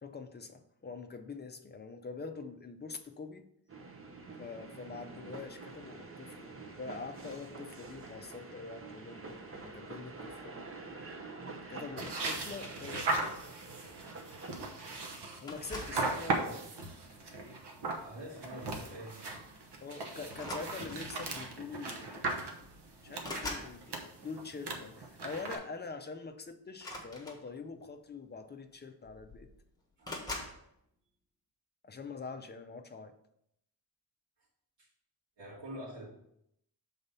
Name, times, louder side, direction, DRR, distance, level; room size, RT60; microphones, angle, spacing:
voice 1, 0.0-3.5 4.4-10.7 11.7-13.3 15.4-16.0 19.8-22.3 23.0-29.5 31.8-33.2, left 4 dB, 25° left, 7 dB, 0.5 m, -45 dB
sound 1, 3.7-15.2, right 3 dB, 30° right, 0.7 m, -47 dB
sound 2, 12.0-25.6, right 3 dB, 70° right, 1.1 m, -38 dB
sound 3, 15.5-16.1 17.0-17.3 18.8-18.9 19.2-19.4 20.3-21.2 22.2-22.3 22.6-23.8 26.7-27.8 28.7-28.8 29.0-29.6 30.0-30.6, left 2 dB, 10° left, 1.2 m, -43 dB
voice 2, 15.9-16.7 18.0-19.4 30.0-30.6 34.8-34.9 35.4-36.1, equal, 90° right, -9 dB, 2.3 m, -45 dB
6.7 x 4.1 x 5.4 m, 0.76 s
wide cardioid pair, 170°, 42 cm